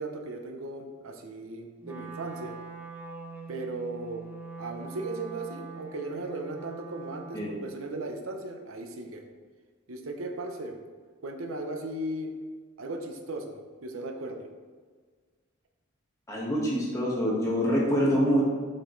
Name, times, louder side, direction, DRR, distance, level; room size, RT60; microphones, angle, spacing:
voice 1, 0.0-2.6 3.5-4.2 4.6-9.3 9.9-10.8 11.2-12.3 12.8-14.5, right 2 dB, 85° right, 4 dB, 0.8 m, -37 dB
Wind instrument woodwind instrument, 1.8-7.8, right 4 dB, 10° right, 0.5 m, -43 dB
voice 2, 16.3-18.4, equal, 15° left, -5 dB, 1.5 m, -25 dB
7.2 x 5.2 x 3.2 m, 1.5 s
head